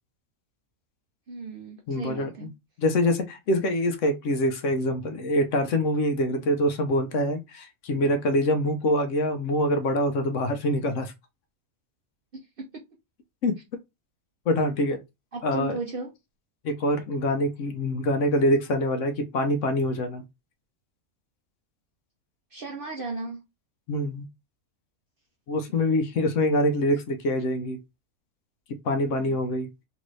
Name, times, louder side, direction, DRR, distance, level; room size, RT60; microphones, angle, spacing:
voice 1, 1.3-2.5 7.9-8.1 12.3-12.8 15.3-16.1 22.5-23.4 25.7-25.8 29.1-29.4, right 3 dB, 60° right, 0.6 m, -36 dB
voice 2, 1.9-2.3 2.8-11.1 13.4-13.6 14.5-15.0 15.4-15.8 16.6-20.2 23.9-24.3 25.5-27.8 28.8-29.7, left 1 dB, 65° left, 0.9 m, -25 dB
3.0 x 2.5 x 3.1 m
omnidirectional pair, 1.5 m